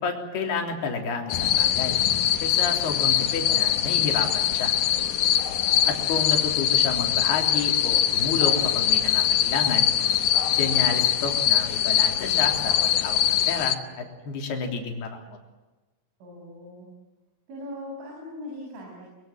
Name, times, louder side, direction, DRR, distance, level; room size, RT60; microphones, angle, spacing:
voice 1, 0.0-2.0 2.4-4.7 5.9-9.9 10.5-15.4, left 5 dB, 55° left, 2 dB, 5.2 m, -30 dB
sound 1, 1.3-13.8, left 10 dB, 85° left, 1.8 m, -23 dB
voice 2, 16.2-16.9 17.5-19.0, left 1 dB, 75° right, -1 dB, 9.7 m, -40 dB
23.5 x 23.0 x 9.2 m, 1.2 s
omnidirectional pair, 5.6 m